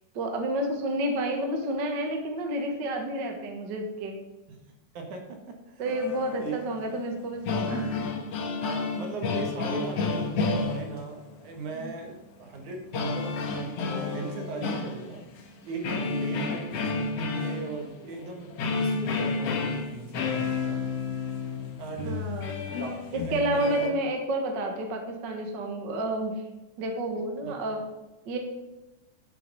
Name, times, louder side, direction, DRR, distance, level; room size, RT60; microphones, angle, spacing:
voice 1, 0.1-4.2 5.8-7.9 11.7-11.9 22.0-22.5 23.1-26.4 26.8-27.8 28.2-28.4, right 1 dB, 45° right, 3 dB, 1.6 m, -30 dB
voice 2, 4.9-6.0 6.3-6.6 8.6-15.2 15.6-20.8 21.8-22.4 22.7-23.9 27.4-27.7, right 4 dB, 70° right, 3 dB, 2.9 m, -39 dB
sound 1, 5.9-7.0 7.2-11.3 12.9-15.5 15.8-23.9, left 4 dB, 60° left, 2.0 m, -31 dB
11.5 x 7.0 x 5.4 m, 1.0 s
omnidirectional pair, 3.7 m